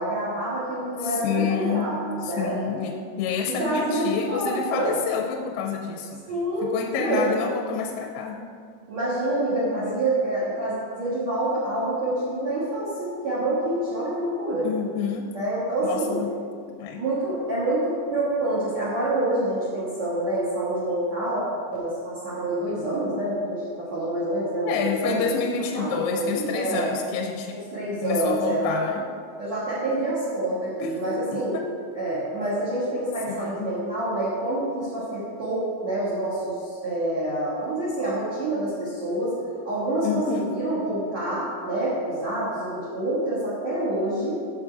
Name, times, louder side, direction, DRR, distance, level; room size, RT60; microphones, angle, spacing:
voice 1, 0.0-2.6 3.4-5.0 6.3-6.7 7.0-7.2 8.9-14.7 15.3-16.2 17.0-21.4 21.7-25.3 25.7-26.9 27.7-28.8 29.4-31.6 31.9-39.4 39.6-44.4, right 1 dB, 60° right, -8 dB, 1.9 m, -27 dB
voice 2, 1.0-6.3 6.6-8.5 9.7-10.0 14.6-15.3 15.8-16.4 16.7-17.0 24.7-27.6 28.0-29.1 30.8-31.0 31.3-31.7 33.3-33.8 40.0-40.5, left 7 dB, 90° left, 3 dB, 3.3 m, -29 dB
9.8 x 7.2 x 4.6 m, 2.2 s
omnidirectional pair, 5.9 m